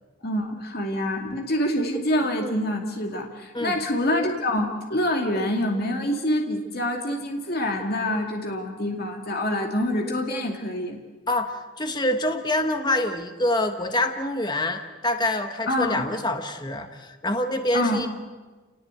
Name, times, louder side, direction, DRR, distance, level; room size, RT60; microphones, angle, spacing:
voice 1, 0.2-11.0 15.7-16.0 17.7-18.0, left 1 dB, 50° left, 2 dB, 2.5 m, -26 dB
voice 2, 11.3-18.1, left 1 dB, 20° left, 6 dB, 1.3 m, -26 dB
29.5 x 19.0 x 8.3 m, 1.3 s
head